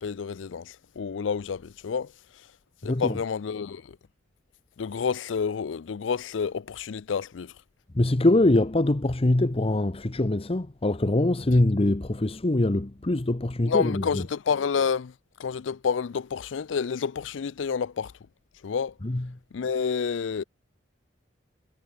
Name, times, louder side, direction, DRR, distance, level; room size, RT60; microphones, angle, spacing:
voice 1, 0.0-2.1 2.8-4.0 4.8-7.5 13.7-15.1 15.4-18.1 18.6-18.9 19.5-20.4, left 6 dB, 85° left, 0.5 m, -29 dB
voice 2, 2.8-3.2 7.9-14.3 19.0-19.4, left 1 dB, 30° left, 0.9 m, -23 dB
head